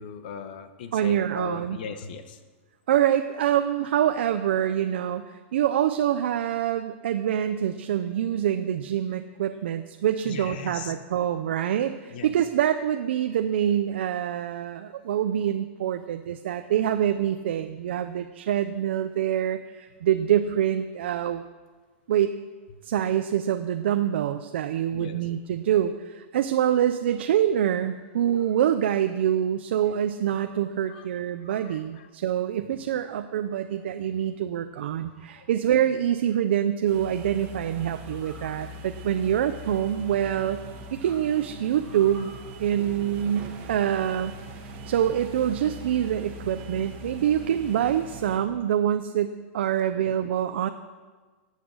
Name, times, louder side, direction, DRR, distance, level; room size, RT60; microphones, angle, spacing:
voice 1, 0.0-2.4 10.2-10.9 12.1-12.3 24.9-25.2 30.9-31.0 31.7-32.1, left 6 dB, 45° left, 9 dB, 1.1 m, -38 dB
voice 2, 0.9-1.8 2.9-21.4 22.1-22.3 22.8-40.6 40.9-42.3 42.6-44.3 44.9-50.7, right 10 dB, 60° right, 8 dB, 0.6 m, -25 dB
sound 1, 27.5-29.3 30.3-30.7 31.4-31.8 32.6-33.1 33.7-34.3 35.0-35.8 36.9-37.2 38.0-40.1 40.6-42.4, right 1 dB, ahead, 3.6 m, -54 dB
sound 2, 36.8-48.4, right 1 dB, 25° right, 1.4 m, -41 dB
15.5 x 8.2 x 6.3 m, 1.4 s
supercardioid pair, 180°, 7 cm